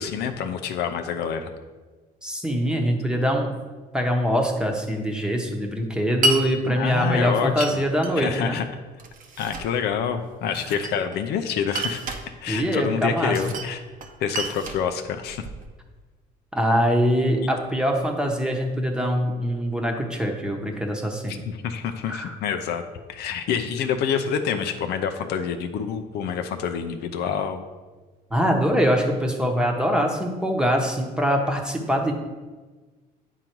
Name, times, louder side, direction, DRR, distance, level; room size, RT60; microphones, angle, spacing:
voice 1, 0.0-1.5 6.7-7.8 8.2-8.6 9.4-12.0 12.4-13.8 14.2-15.4 21.3-22.8 23.1-27.6, left 7 dB, 75° left, 7 dB, 0.6 m, -27 dB
voice 2, 2.2-3.5 3.9-8.6 10.6-10.8 12.5-13.4 16.5-21.4 22.1-22.3 28.3-32.1, equal, 5° right, 2 dB, 1.1 m, -23 dB
Glass, 6.2-6.4 7.6-8.1 9.0-9.7 10.5-11.2 11.7-12.3 13.3-13.7 14.0-15.7, right 1 dB, 55° right, 0.9 m, -29 dB
9.2 x 3.8 x 4.5 m, 1.3 s
cardioid pair, 110°, 17 cm